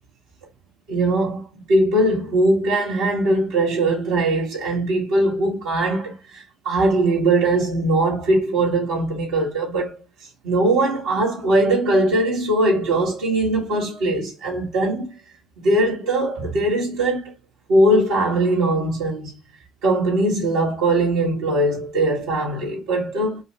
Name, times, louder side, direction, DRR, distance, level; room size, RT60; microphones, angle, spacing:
voice 1, 0.9-10.0 10.4-15.2 15.6-17.3 17.7-19.3 19.8-23.4, right 1 dB, 85° right, 1.5 m, -20 dB
4.6 x 2.2 x 2.8 m
supercardioid pair, 70°, 0 cm